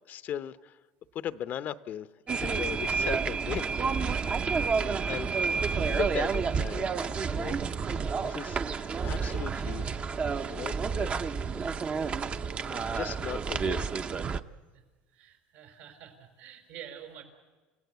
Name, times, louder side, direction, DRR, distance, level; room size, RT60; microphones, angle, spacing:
voice 1, 0.1-0.8 1.1-3.7 4.2-4.7 5.0-5.3 5.8-6.9 7.3-7.6 7.9-9.8 10.5-11.3 12.7-13.9, left 10 dB, 50° left, 14 dB, 0.7 m, -38 dB
sound 1, 2.3-14.4, right 5 dB, 30° right, 0.8 m, -30 dB
voice 2, 15.1-17.2, right 10 dB, 75° right, 5 dB, 5.0 m, -47 dB
29.5 x 16.5 x 8.1 m, 1.3 s
supercardioid pair, 110°, 4 cm